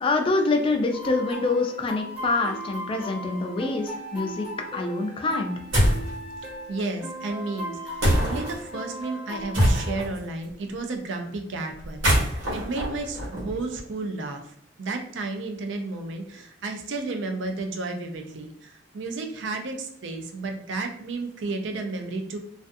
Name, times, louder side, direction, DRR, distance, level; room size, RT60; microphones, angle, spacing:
voice 1, 0.0-4.5 4.7-5.5, left 3 dB, 30° left, 4 dB, 0.3 m, -25 dB
sound 1, 0.9-10.0, equal, 5° right, 0.7 m, -38 dB
sound 2, 5.7-6.1 8.0-8.5 9.5-10.2 11.8-13.8, equal, 90° right, 1.0 m, -23 dB
voice 2, 6.4-22.4, right 3 dB, 70° right, 4 dB, 0.4 m, -33 dB
2.4 x 2.3 x 2.5 m, 0.70 s
head